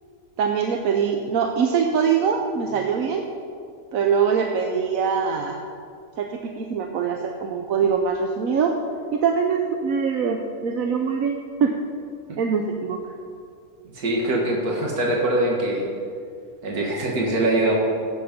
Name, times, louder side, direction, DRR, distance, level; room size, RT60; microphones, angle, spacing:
voice 1, 0.4-3.2 3.9-5.6 6.2-8.7 9.1-11.7 12.4-13.0, right 6 dB, 70° right, 3 dB, 1.2 m, -23 dB
voice 2, 13.9-15.9 16.6-17.7, right 1 dB, 85° right, -2 dB, 2.1 m, -23 dB
16.0 x 8.0 x 5.1 m, 2.4 s
omnidirectional pair, 1.5 m